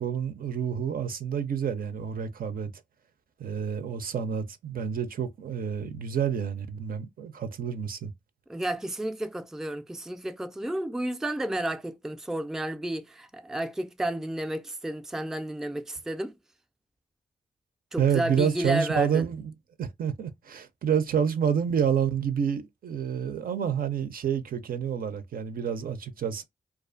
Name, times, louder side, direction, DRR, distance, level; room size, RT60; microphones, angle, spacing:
voice 1, 0.0-2.7 3.4-8.1 18.0-19.5 19.8-26.4, right 8 dB, 65° right, 0.5 m, -28 dB
voice 2, 8.5-16.3 17.9-19.2, right 1 dB, 5° right, 0.4 m, -31 dB
2.4 x 2.3 x 2.4 m
supercardioid pair, 45°, 16 cm